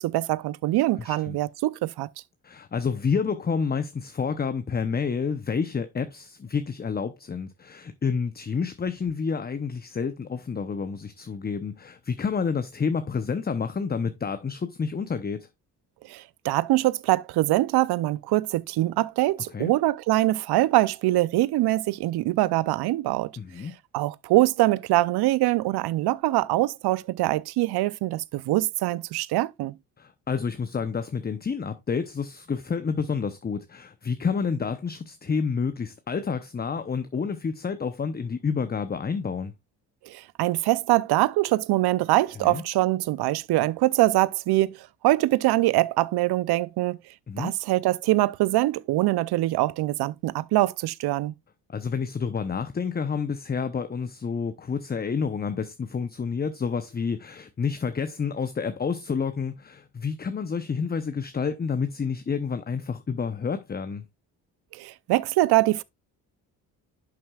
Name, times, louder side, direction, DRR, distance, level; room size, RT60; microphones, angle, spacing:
voice 1, 0.0-2.1 16.1-23.3 23.9-29.8 40.0-47.0 47.4-51.3 64.7-65.8, right 17 dB, 70° right, 0.6 m, -23 dB
voice 2, 1.0-1.4 2.4-15.5 19.5-19.7 23.4-23.7 30.0-39.5 42.4-42.6 47.3-47.5 51.7-64.0, left 5 dB, 25° left, 0.7 m, -29 dB
11.0 x 6.0 x 2.3 m
supercardioid pair, 70°, 39 cm